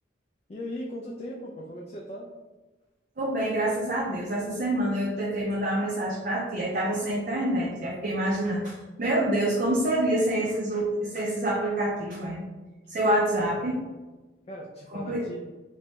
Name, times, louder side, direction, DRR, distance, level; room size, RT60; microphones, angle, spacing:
voice 1, 0.5-2.3 14.4-15.5, left 1 dB, 35° left, -3 dB, 0.3 m, -38 dB
voice 2, 3.2-12.4 12.9-13.8 14.9-15.2, right 1 dB, 50° right, -4 dB, 0.5 m, -27 dB
3.0 x 2.2 x 2.8 m, 1.2 s
head